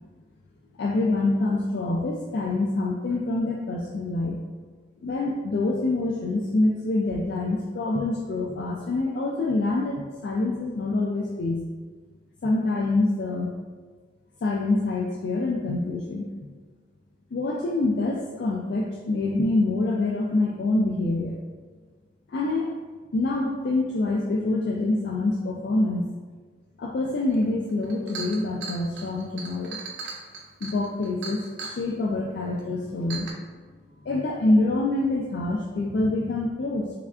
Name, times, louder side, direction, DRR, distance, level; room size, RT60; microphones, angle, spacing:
voice 1, 0.8-4.4 5.0-10.0 10.2-11.6 12.4-13.5 14.4-16.3 17.3-21.4 22.3-22.7 23.1-26.0 26.8-29.8 30.6-33.3 34.0-36.9, left 2 dB, 65° left, -1 dB, 0.3 m, -26 dB
Chink clink, 27.4-27.5 27.8-31.8 32.6-32.7 33.1-33.3, right 4 dB, 75° right, 0.4 m, -38 dB
3.5 x 3.3 x 2.3 m, 1.5 s
head